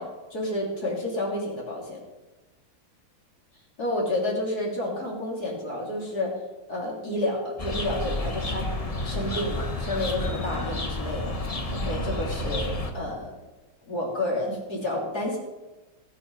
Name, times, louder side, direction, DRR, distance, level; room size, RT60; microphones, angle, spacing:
voice 1, 0.0-2.0 3.8-6.3 6.7-8.7 9.0-11.3 11.7-13.4 13.9-15.4, left 1 dB, 45° left, -3 dB, 3.6 m, -30 dB
sound 1, 7.6-12.9, left 1 dB, 25° left, 0.8 m, -30 dB
18.0 x 9.2 x 5.5 m, 1.1 s
omnidirectional pair, 2.4 m